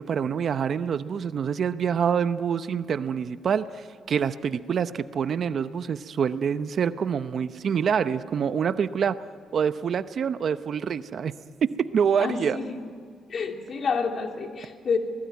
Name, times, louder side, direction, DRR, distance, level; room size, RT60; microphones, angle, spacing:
voice 1, 0.0-9.2 9.5-11.3 11.6-12.6, right 7 dB, 55° right, 13 dB, 0.8 m, -26 dB
voice 2, 12.2-12.8 13.3-15.0, left 5 dB, 50° left, 3 dB, 2.9 m, -28 dB
27.5 x 19.5 x 9.5 m, 2.2 s
cardioid pair, 90°, 0 cm